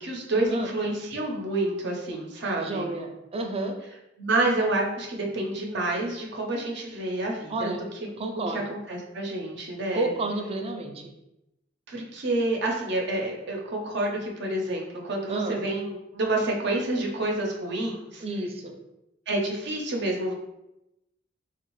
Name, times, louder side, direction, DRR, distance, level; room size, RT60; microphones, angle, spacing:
voice 1, 0.0-2.9 4.2-5.1 5.3-7.7 8.5-10.1 11.9-18.2 19.3-20.3, right 2 dB, 65° right, 0 dB, 0.7 m, -28 dB
voice 2, 2.6-3.7 7.5-7.8 8.2-8.6 9.9-11.1 15.3-15.6 18.2-18.7, right 2 dB, 30° right, 4 dB, 0.4 m, -30 dB
3.5 x 2.4 x 3.0 m, 0.89 s
head